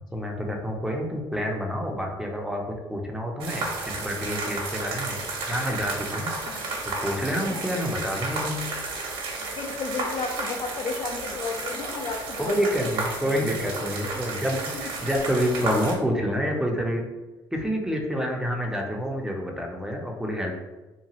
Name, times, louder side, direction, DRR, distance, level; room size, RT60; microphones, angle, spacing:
voice 1, 0.0-2.6 2.9-5.2 5.5-6.6 7.0-8.7 12.4-17.0 17.5-20.5, equal, 5° right, 1 dB, 0.5 m, -28 dB
sound 1, 3.4-16.0, right 3 dB, 65° right, 0.7 m, -32 dB
voice 2, 6.5-6.8 7.5-7.8 9.4-12.7 13.2-14.4, left 4 dB, 50° left, 4 dB, 0.4 m, -34 dB
2.8 x 2.3 x 2.8 m, 1.1 s
supercardioid pair, 90°, 10 cm